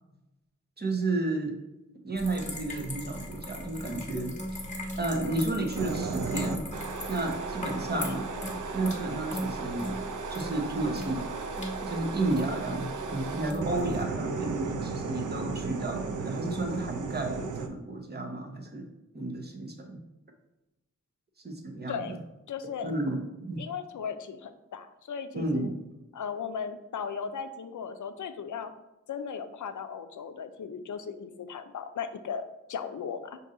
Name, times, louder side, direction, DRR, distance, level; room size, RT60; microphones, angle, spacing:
voice 1, 0.8-1.6 2.0-4.4 5.0-6.7 7.1-8.2 8.7-10.0 10.3-11.3 11.8-18.9 19.1-20.0 21.4-22.2 22.8-23.6 25.3-25.8, right 2 dB, 35° right, 3 dB, 0.7 m, -32 dB
sound 1, 2.2-14.0, equal, 25° left, 1.0 m, -39 dB
sound 2, 5.7-17.7, right 4 dB, 75° right, 0.5 m, -35 dB
voice 2, 21.9-22.2 22.5-22.9 23.6-25.7 26.1-28.7 29.1-33.4, left 6 dB, 80° left, 9 dB, 0.4 m, -37 dB
5.3 x 2.7 x 3.7 m, 0.99 s
wide cardioid pair, 105°, 30 cm